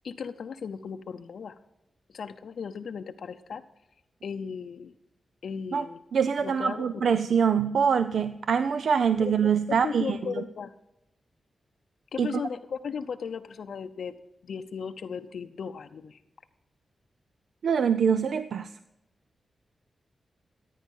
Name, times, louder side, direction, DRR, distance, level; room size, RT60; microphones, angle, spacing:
voice 1, 0.0-1.6 2.1-3.6 4.2-4.9 5.4-6.0 6.4-7.0 9.2-9.3 9.7-10.7 12.1-14.2 14.4-16.2, left 6 dB, 75° left, 6 dB, 0.6 m, -36 dB
voice 2, 6.1-10.4 12.2-12.4 17.6-18.7, right 7 dB, 75° right, 12 dB, 0.5 m, -24 dB
14.5 x 9.3 x 5.4 m, 0.89 s
cardioid pair, 80°, 0 cm